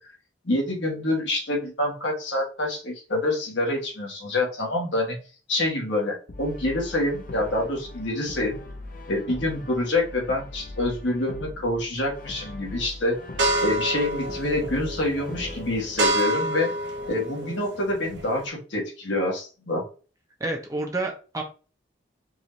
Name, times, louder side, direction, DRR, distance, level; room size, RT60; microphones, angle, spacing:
voice 1, 0.4-5.2 5.5-8.6 9.1-13.2 13.6-16.7 17.1-19.8, left 1 dB, 75° left, -1 dB, 1.6 m, -26 dB
Brass instrument, 6.3-16.1, left 2 dB, 45° left, 0.6 m, -40 dB
sound 1, 13.4-18.5, right 1 dB, 70° right, 0.9 m, -28 dB
voice 2, 20.4-21.4, right 2 dB, 20° right, 2 dB, 0.7 m, -29 dB
4.6 x 3.2 x 2.7 m, 0.36 s
head